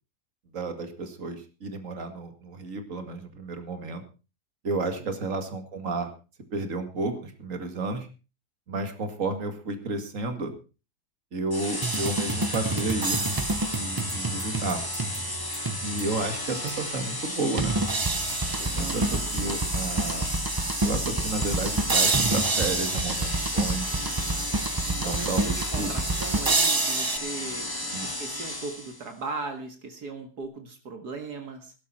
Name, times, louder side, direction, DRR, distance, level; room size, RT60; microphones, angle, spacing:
voice 1, 0.5-4.0 4.6-6.1 6.5-8.1 8.7-10.5 11.3-13.2 13.8-14.8 15.8-17.8 18.6-20.3 20.8-23.9 24.9-26.0 27.9-28.1, right 3 dB, 50° right, 6 dB, 2.5 m, -32 dB
sound 1, 11.5-29.1, left 1 dB, 15° left, 1.7 m, -33 dB
sound 2, 11.8-16.2 16.7-16.8 17.6-27.2, right 3 dB, 25° right, 0.5 m, -28 dB
voice 2, 18.8-19.3 25.0-27.7 28.0-31.7, right 3 dB, 75° right, 5 dB, 2.3 m, -38 dB
17.5 x 12.0 x 4.3 m, 0.33 s
omnidirectional pair, 1.7 m